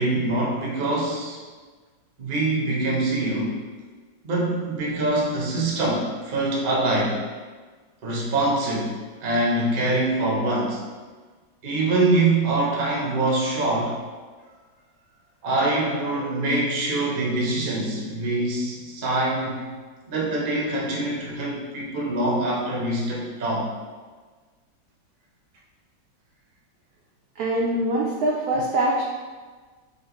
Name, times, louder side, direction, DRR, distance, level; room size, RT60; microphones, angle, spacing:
voice 1, 0.0-1.4 2.2-3.6 4.2-7.2 8.0-9.0 9.2-10.8 11.6-14.0 15.4-19.7 20.1-23.7, right 2 dB, 45° right, -3 dB, 0.6 m, -24 dB
voice 2, 27.4-29.0, right 1 dB, 75° right, -3 dB, 0.8 m, -23 dB
5.7 x 2.5 x 3.0 m, 1.4 s
omnidirectional pair, 2.1 m